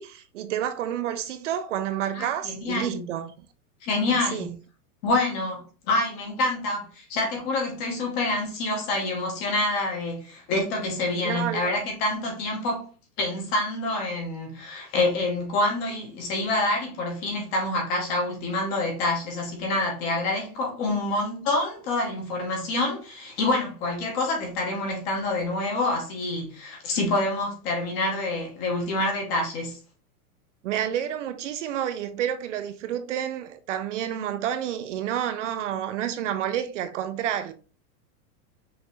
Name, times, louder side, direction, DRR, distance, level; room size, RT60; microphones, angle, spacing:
voice 1, 0.0-3.5 4.1-4.5 11.2-11.7 30.6-37.5, right 10 dB, 55° right, 0.5 m, -29 dB
voice 2, 2.6-3.1 3.8-4.5 5.0-12.9 13.2-29.8, left 2 dB, 20° left, 0.7 m, -27 dB
5.7 x 2.5 x 3.0 m
supercardioid pair, 175°, 45 cm